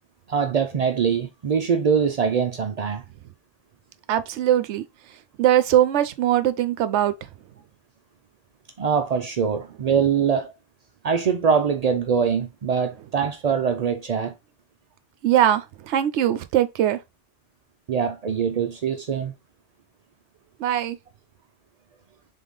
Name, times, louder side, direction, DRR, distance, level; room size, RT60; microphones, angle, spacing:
voice 1, 0.3-3.0 8.8-10.5 11.0-14.3 17.9-19.3, right 6 dB, 85° right, 0.3 m, -23 dB
voice 2, 4.1-7.3 15.2-17.0 20.6-21.0, right 11 dB, 70° right, 0.8 m, -21 dB
3.8 x 3.6 x 3.7 m
omnidirectional pair, 1.3 m